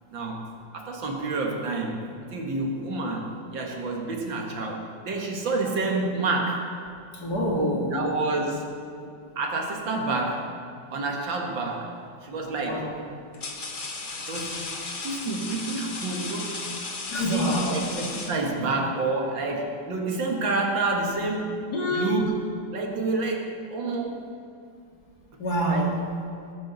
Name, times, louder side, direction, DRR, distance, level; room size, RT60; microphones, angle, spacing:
voice 1, 0.1-0.5 0.7-6.7 7.9-8.7 9.4-10.5 10.9-11.9 12.2-12.9 14.3-14.6 15.0-16.5 17.3-21.6 21.9-22.3 22.7-24.2 25.7-25.8, right 3 dB, 75° right, 1 dB, 2.4 m, -28 dB
voice 2, 7.1-8.1 12.6-13.0 17.1-17.9 21.7-22.2 25.4-26.2, equal, 55° left, -2 dB, 2.8 m, -26 dB
sound 1, 11.8-12.1 12.9-18.9, left 3 dB, 35° left, 1.0 m, -35 dB
19.0 x 11.0 x 4.1 m, 2.5 s
omnidirectional pair, 2.1 m